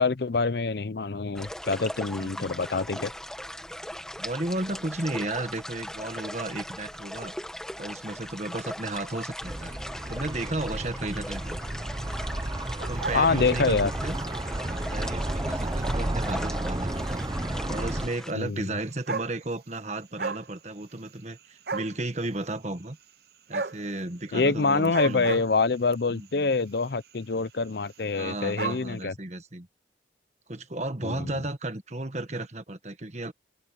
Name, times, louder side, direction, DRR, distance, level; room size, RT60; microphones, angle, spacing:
voice 1, 0.0-3.1 13.1-13.9 18.3-18.7 24.3-29.1 31.0-31.3, left 4 dB, 60° left, 0.6 m, -26 dB
sound 1, 1.3-18.3, equal, 5° left, 1.5 m, -39 dB
voice 2, 4.2-7.3 7.8-9.7 10.1-11.6 12.9-14.1 14.6-17.2 17.7-23.0 23.5-25.4 26.1-26.5 28.1-29.7 30.5-33.3, right 2 dB, 35° right, 1.6 m, -34 dB
sound 2, 9.4-18.1, right 1 dB, 20° right, 0.7 m, -32 dB
sound 3, 12.8-14.0 14.5-14.8 15.6-15.7 15.9-16.0 16.3-16.4 17.6-17.7 18.6-18.7 18.9-19.7 20.0-20.5 20.8-21.4 21.7-22.0 23.5-23.8 24.8-26.0 26.8-27.1 27.4-27.5 27.7-27.8 28.0-28.9, right 4 dB, 55° right, 0.7 m, -33 dB
open air
head